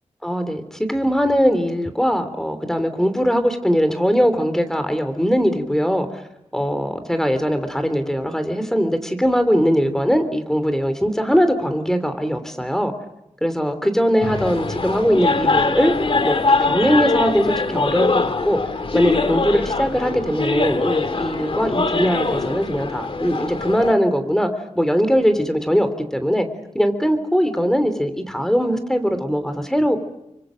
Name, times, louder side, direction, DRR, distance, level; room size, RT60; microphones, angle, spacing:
voice 1, 0.2-6.2 6.5-12.9 13.4-18.6 18.9-24.5 24.7-26.5 26.7-30.0, equal, 5° left, 9 dB, 3.2 m, -20 dB
sound 1, 14.2-23.9, left 3 dB, 50° left, 1.9 m, -22 dB
29.0 x 24.5 x 6.5 m, 0.87 s
wide cardioid pair, 100°, 12 cm